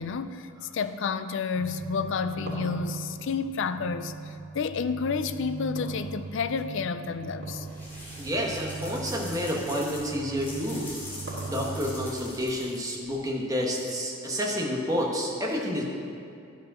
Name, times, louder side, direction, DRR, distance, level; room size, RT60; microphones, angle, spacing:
voice 1, 0.0-7.7, left 5 dB, 60° left, 0.4 m, -30 dB
sound 1, 1.5-12.2, right 4 dB, 35° right, 0.4 m, -39 dB
sound 2, 2.1-4.4 5.8-6.6 7.4-7.8 8.1-8.2 9.0-9.1 10.5-12.0, right 1 dB, 85° right, 2.4 m, -42 dB
sound 3, 7.6-13.2, left 1 dB, 10° left, 2.3 m, -43 dB
voice 2, 8.2-10.9 11.4-15.8, equal, 15° right, 1.2 m, -29 dB
11.0 x 5.2 x 6.1 m
head